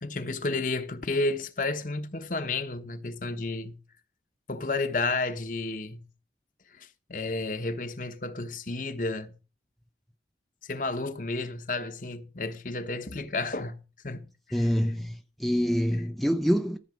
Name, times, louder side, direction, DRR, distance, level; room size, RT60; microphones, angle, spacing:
voice 1, 0.0-3.8 4.5-6.0 6.8-9.3 10.7-13.8 14.0-14.7, left 3 dB, 45° left, 1.1 m, -32 dB
voice 2, 14.5-16.8, equal, ahead, 0.5 m, -26 dB
13.5 x 7.3 x 5.0 m
head